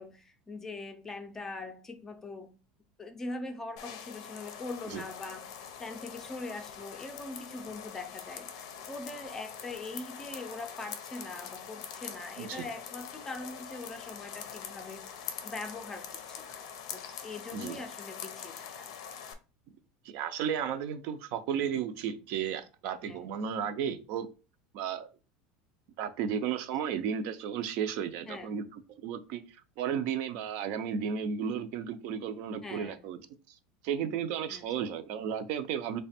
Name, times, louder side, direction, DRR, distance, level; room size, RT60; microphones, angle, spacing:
voice 1, 0.0-2.6 3.0-16.6 16.9-18.9 23.0-23.2 28.3-28.5 32.6-33.1 34.5-34.7, left 3 dB, 15° left, 0.4 m, -42 dB
sound 1, 3.8-19.3, left 8 dB, 85° left, 0.5 m, -44 dB
voice 2, 20.0-24.3 24.7-25.1 26.0-33.2 33.5-33.6 33.8-36.0, right 8 dB, 55° right, 0.4 m, -34 dB
3.3 x 2.2 x 4.1 m
supercardioid pair, 155°, 3 cm